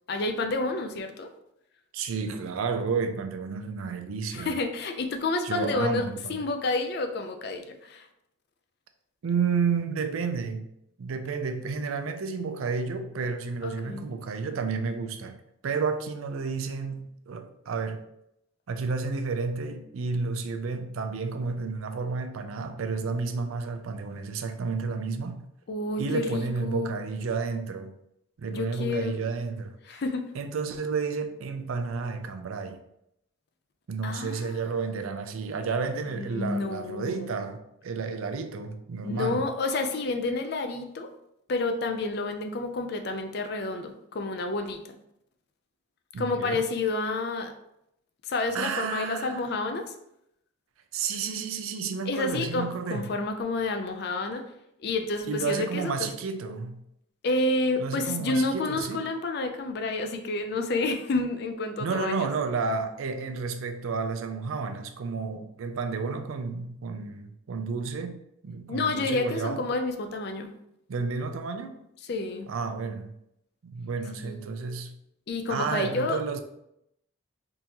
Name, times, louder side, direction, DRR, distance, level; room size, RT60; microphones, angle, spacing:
voice 1, 0.1-1.3 4.3-8.1 13.6-14.1 25.7-27.0 28.5-29.1 29.9-30.3 34.0-34.6 36.1-37.3 39.0-41.1 41.5-44.9 46.2-47.5 48.3-49.9 52.1-54.5 54.8-56.1 57.2-62.3 68.7-70.5 72.1-72.5 74.2-74.4 75.3-76.2, left 3 dB, 50° left, 0.4 m, -29 dB
voice 2, 1.9-4.6 5.4-6.4 9.2-10.7 11.0-15.4 15.6-18.1 18.7-25.5 26.0-27.9 28.4-30.0 30.3-32.8 33.9-39.5 46.1-46.6 48.5-49.5 50.9-53.1 55.3-56.8 57.8-59.1 61.8-68.2 68.4-69.7 70.9-71.8 72.5-73.1 73.6-75.0 75.5-76.4, right 5 dB, 90° right, 0.4 m, -31 dB
3.6 x 2.7 x 2.8 m
head